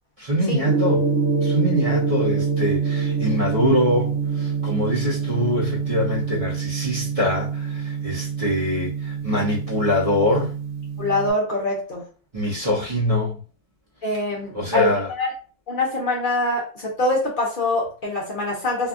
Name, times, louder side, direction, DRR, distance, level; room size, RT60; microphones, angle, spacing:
voice 1, 0.2-1.0 1.4-10.5 12.3-13.4 14.5-15.1, left 1 dB, 35° right, -5 dB, 0.8 m, -24 dB
Gong, 0.6-11.3, right 5 dB, 90° right, 1.0 m, -25 dB
voice 2, 11.0-12.0 14.0-15.3 15.7-18.9, left 2 dB, 50° left, -3 dB, 0.8 m, -24 dB
2.7 x 2.3 x 2.4 m, 0.38 s
omnidirectional pair, 1.2 m